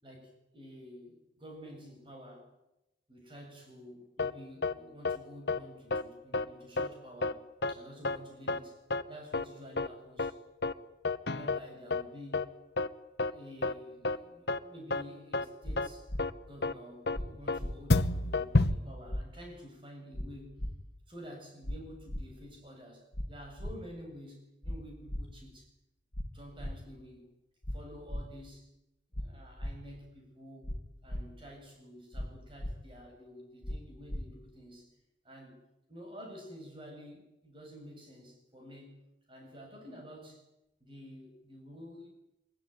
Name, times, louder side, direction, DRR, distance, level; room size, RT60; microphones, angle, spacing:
voice 1, 0.0-2.5 3.1-8.8 9.1-10.4 11.3-12.5 13.3-16.1 16.4-20.6 21.1-25.7 26.3-27.3 27.7-28.7 29.1-30.7 31.0-34.9 35.2-35.6 35.9-39.0 39.3-40.4 40.8-42.1, equal, 30° right, 1 dB, 7.5 m, -50 dB
sound 1, 4.2-4.3 4.6-4.7 5.0-5.2 5.5-5.6 5.9-6.0 6.3-6.4 6.8-6.9 7.2-7.3 7.6-7.7 8.0-8.2 8.5-8.6 8.9-9.0 9.3-9.4 9.8-9.9 10.2-10.3 10.6-10.7 11.0-11.6 11.9-12.0 12.3-12.4 12.8-12.9 13.2-13.3 13.6-13.7 14.0-14.2 14.5-14.6 14.9-15.0 15.3-15.4 15.8-15.9 16.2-16.3 16.6-16.7 17.1-17.2 17.5-17.6 17.9-18.7, left 3 dB, 65° left, 1.2 m, -29 dB
sound 2, 15.6-15.8 16.1-16.2 17.1-17.3 17.6-17.7 18.6-18.8 19.1-19.2 20.1-20.3 20.6-20.7 21.6-21.8 22.1-22.2 23.1-23.3 23.6-23.7 24.6-24.8 25.1-25.2 26.1-26.3 26.6-26.7 27.6-27.8 28.1-28.2 29.1-29.3 29.6-29.7 30.6-30.8 31.1-31.2 32.1-32.3 32.6-32.7 33.6-33.8 34.1-34.2, equal, 50° left, 2.9 m, -36 dB
24.5 x 21.5 x 9.4 m, 0.91 s
head